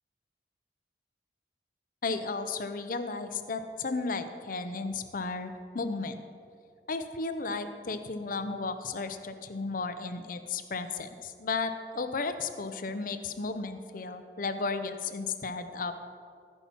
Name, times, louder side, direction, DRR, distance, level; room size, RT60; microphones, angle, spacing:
voice 1, 2.0-6.3 6.9-15.9, left 4 dB, 50° left, 9 dB, 0.6 m, -34 dB
14.5 x 5.7 x 5.8 m, 2.2 s
head